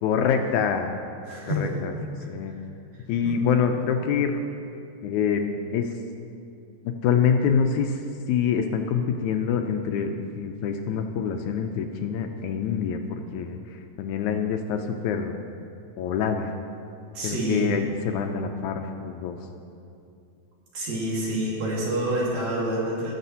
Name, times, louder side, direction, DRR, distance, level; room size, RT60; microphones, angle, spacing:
voice 1, 0.0-0.9 1.6-1.9 2.3-2.5 3.1-4.4 5.0-6.0 6.9-8.0 8.3-15.3 16.0-16.5 17.2-19.4, left 7 dB, 80° left, 5 dB, 1.8 m, -26 dB
voice 2, 1.3-1.7 3.2-3.3 17.1-17.7 20.7-23.1, right 1 dB, 60° right, -5 dB, 2.9 m, -27 dB
18.0 x 7.3 x 2.8 m, 2.5 s
omnidirectional pair, 3.6 m